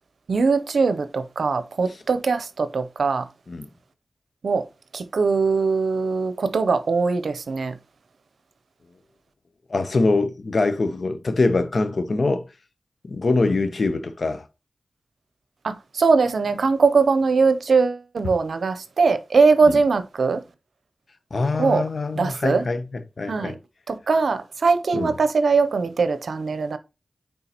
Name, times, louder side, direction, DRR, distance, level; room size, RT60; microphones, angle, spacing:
voice 1, 0.3-3.3 4.4-4.6 4.9-7.8 15.6-20.4 21.6-21.8 22.2-22.6 23.2-23.6 23.9-26.8, right 4 dB, 85° right, 0.6 m, -21 dB
voice 2, 9.7-12.4 13.0-14.4 19.7-19.8 21.3-23.6 24.9-25.1, left 3 dB, 70° left, 0.7 m, -23 dB
9.0 x 3.7 x 2.9 m
cardioid pair, 40°, 0 cm